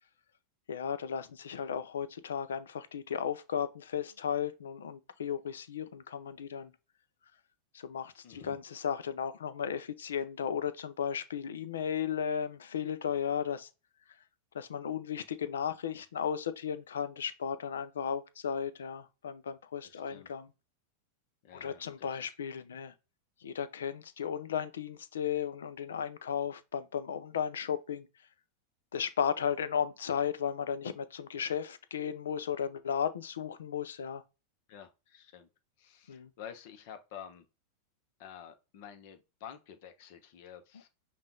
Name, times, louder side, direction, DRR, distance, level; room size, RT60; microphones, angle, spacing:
voice 1, 0.7-6.7 7.7-13.7 14.5-20.5 21.5-22.9 23.4-28.1 28.9-34.2 36.1-36.3, left 8 dB, 85° left, 0.6 m, -35 dB
voice 2, 8.2-8.6 19.8-20.3 21.4-22.3 34.7-35.5 35.8-37.5 38.2-40.9, left 9 dB, 60° left, 1.0 m, -50 dB
5.6 x 2.5 x 3.7 m
hypercardioid pair, 110°, 0 cm